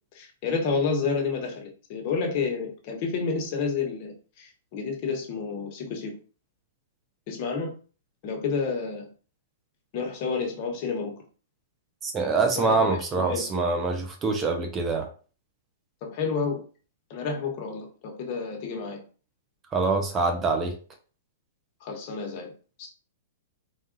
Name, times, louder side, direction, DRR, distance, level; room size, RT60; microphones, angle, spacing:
voice 1, 0.1-6.2 7.3-7.7 8.2-9.1 9.9-11.1 12.6-13.4 16.0-16.6 17.1-19.0 21.8-22.5 22.8-22.9, left 5 dB, 40° left, 1.2 m, -30 dB
voice 2, 12.0-15.1 19.7-20.7, right 3 dB, 20° right, 0.5 m, -25 dB
3.9 x 2.4 x 3.8 m
hypercardioid pair, 150°, 0 cm